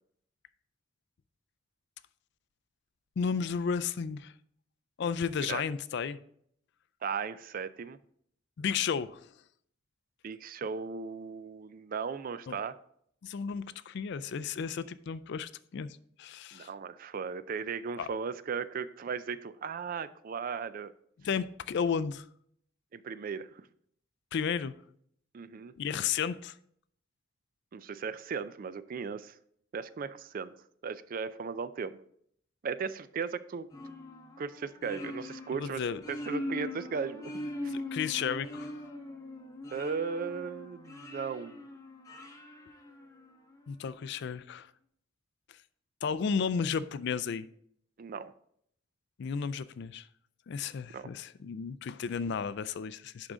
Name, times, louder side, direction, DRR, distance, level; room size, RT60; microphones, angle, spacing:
voice 1, 3.2-4.3 5.0-6.2 8.6-9.3 12.5-12.6 13.2-16.7 18.0-18.1 21.2-22.2 24.3-24.7 25.8-26.6 35.6-36.0 37.7-38.7 43.7-44.7 46.0-47.5 49.2-50.1 50.5-53.3, left 6 dB, 55° left, 0.4 m, -33 dB
voice 2, 7.0-8.0 10.2-12.7 16.5-20.9 22.9-23.6 25.3-25.7 27.7-29.4 29.7-30.5 30.8-32.0 32.6-33.7 34.4-37.3 37.6-37.8 39.7-41.7 48.0-48.3 50.9-51.1, right 5 dB, 45° right, 0.3 m, -37 dB
sound 1, 33.7-43.5, left 1 dB, 15° left, 0.8 m, -41 dB
11.0 x 3.7 x 3.8 m
head